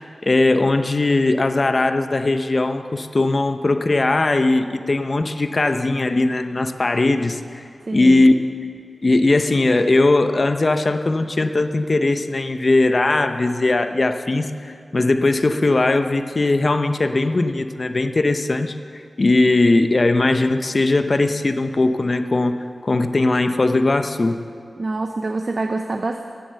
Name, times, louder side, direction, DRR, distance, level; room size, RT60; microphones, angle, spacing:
voice 1, 0.2-7.6 7.9-8.3 9.0-24.4, left 2 dB, 50° left, 9 dB, 0.8 m, -19 dB
voice 2, 7.8-8.3 24.8-26.3, right 3 dB, 55° right, 5 dB, 0.7 m, -26 dB
15.5 x 10.0 x 6.9 m, 2.3 s
wide cardioid pair, 60°, 0 cm